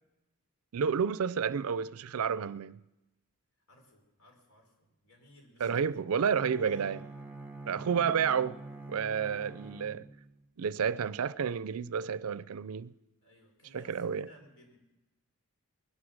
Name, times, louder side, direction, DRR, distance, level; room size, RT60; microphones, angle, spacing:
voice 1, 0.7-2.8 5.6-7.0 7.7-8.6 8.9-10.0 10.6-12.9 13.7-14.3, right 7 dB, 80° right, 0.5 m, -30 dB
voice 2, 3.7-5.8 6.1-7.1 9.2-9.4 13.2-14.8, equal, 70° left, 4.4 m, -58 dB
Bowed string instrument, 6.2-10.4, right 3 dB, 10° right, 1.2 m, -46 dB
20.5 x 11.5 x 6.1 m
head